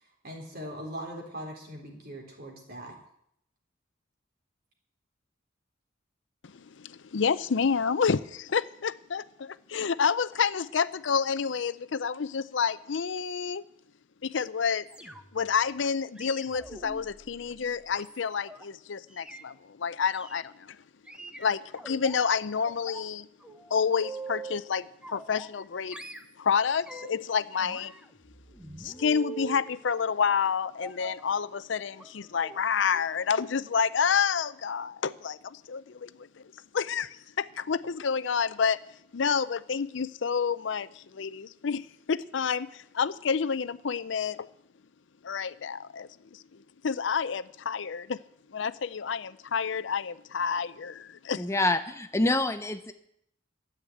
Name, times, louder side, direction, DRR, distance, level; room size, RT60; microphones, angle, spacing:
voice 1, 0.0-3.0, equal, 55° right, 0 dB, 3.9 m, -41 dB
voice 2, 6.4-13.6 14.2-14.9 15.3-20.8 21.4-23.3 23.7-26.0 26.4-27.9 28.8-36.3 36.7-38.8 39.1-44.5 45.2-46.4 46.8-48.2 48.5-51.5, left 6 dB, 70° left, 15 dB, 0.5 m, -29 dB
sound 1, 14.9-15.5 16.2-18.6 19.1-19.4 20.1-20.4 21.1-22.2 22.6-23.1 23.4-24.6 25.0-25.7 25.9-27.2 27.5-29.6 30.8-31.2 31.9-32.1 32.4-32.6 32.9-33.1 33.4-33.5, right 4 dB, 5° right, 0.9 m, -44 dB
voice 3, 51.4-52.9, left 2 dB, 15° left, 8 dB, 0.6 m, -26 dB
13.5 x 8.0 x 8.7 m, 0.74 s
head